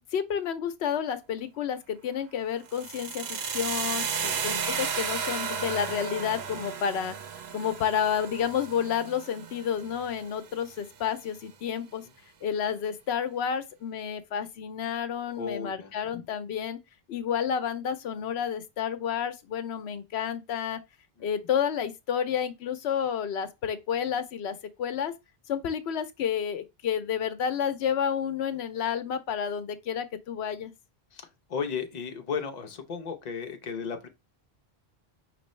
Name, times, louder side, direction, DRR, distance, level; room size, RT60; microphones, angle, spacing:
voice 1, 0.1-7.2 7.5-12.0 12.4-16.8 17.1-20.8 21.2-25.1 25.5-30.7, left 8 dB, 90° left, 0.9 m, -30 dB
sound 1, 2.7-10.7, right 6 dB, 80° right, 0.9 m, -34 dB
voice 2, 15.3-16.2 21.2-21.3 31.1-34.1, left 6 dB, 45° left, 0.8 m, -35 dB
5.2 x 3.1 x 3.1 m
omnidirectional pair, 1.1 m